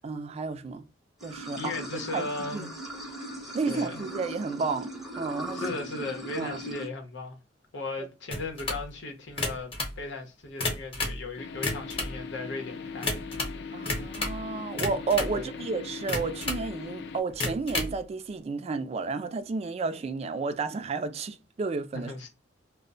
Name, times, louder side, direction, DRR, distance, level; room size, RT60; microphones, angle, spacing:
voice 1, 0.0-0.8 1.2-1.7 2.1-2.2 2.5-2.7 3.5-5.6 6.4-6.6 13.7-22.1, right 4 dB, 35° right, 0.3 m, -32 dB
Water / Sink (filling or washing), 1.2-6.9, right 1 dB, ahead, 0.6 m, -39 dB
voice 2, 1.6-2.7 3.7-4.0 5.5-7.4 7.7-13.6 15.3-15.5 21.9-22.3, left 3 dB, 85° left, 0.8 m, -37 dB
sound 1, 8.3-8.9 9.3-10.0 10.4-11.2 11.5-12.2 13.0-13.6 13.8-14.4 14.8-15.4 16.1-16.7 17.3-18.0, left 2 dB, 30° left, 0.8 m, -31 dB
sound 2, 11.4-17.2, left 5 dB, 70° left, 0.4 m, -40 dB
2.2 x 2.0 x 3.7 m
head